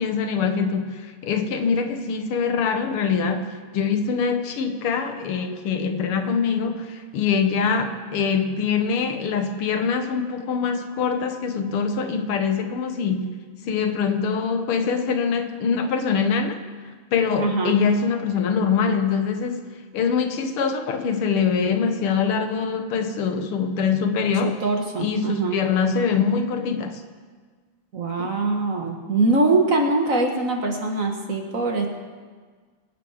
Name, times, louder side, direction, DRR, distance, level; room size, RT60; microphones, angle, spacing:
voice 1, 0.0-13.4 13.6-16.6 17.1-19.6 19.9-24.6 25.0-27.0 28.2-28.3, left 6 dB, 85° left, 7 dB, 2.0 m, -24 dB
voice 2, 17.4-17.8 24.4-25.6 27.9-31.9, right 3 dB, 45° right, 2 dB, 1.6 m, -23 dB
23.5 x 8.5 x 4.8 m, 1.5 s
omnidirectional pair, 2.4 m